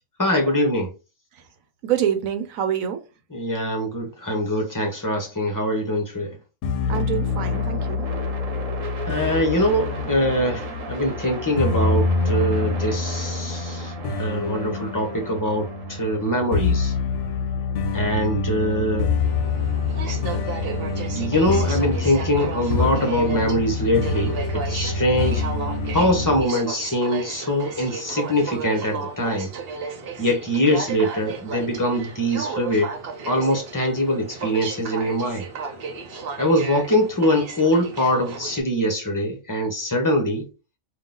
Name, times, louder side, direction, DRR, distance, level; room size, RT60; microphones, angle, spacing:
voice 1, 0.2-0.9 3.3-6.4 9.1-13.9 14.2-16.9 17.9-19.1 21.1-25.4 25.9-29.5 30.2-33.0 33.3-35.5 36.4-40.5, equal, 15° left, 0.9 m, -23 dB
voice 2, 1.8-3.0 6.9-8.1, right 10 dB, 85° right, 1.2 m, -26 dB
sound 1, 6.6-26.4, left 4 dB, 65° left, 0.9 m, -26 dB
sound 2, 6.9-19.0, right 3 dB, 70° right, 1.3 m, -37 dB
Aircraft, 19.2-38.6, right 5 dB, 50° right, 0.9 m, -34 dB
3.8 x 2.7 x 3.7 m
omnidirectional pair, 1.4 m